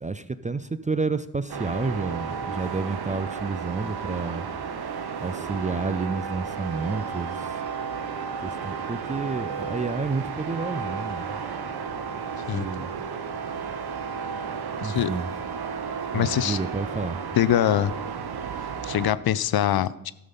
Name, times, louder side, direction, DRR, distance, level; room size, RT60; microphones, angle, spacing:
voice 1, 0.0-4.5 5.2-7.6 8.4-11.4 12.5-13.0 14.8-15.3 16.1-17.2, right 4 dB, 15° right, 13 dB, 0.4 m, -30 dB
sound 1, 1.5-19.1, right 6 dB, 50° right, 1.0 m, -33 dB
voice 2, 14.8-15.1 16.1-16.6 17.4-17.9 18.8-20.1, left 11 dB, 50° left, 17 dB, 0.5 m, -23 dB
13.0 x 5.8 x 5.3 m, 0.87 s
hypercardioid pair, 40°, 50 cm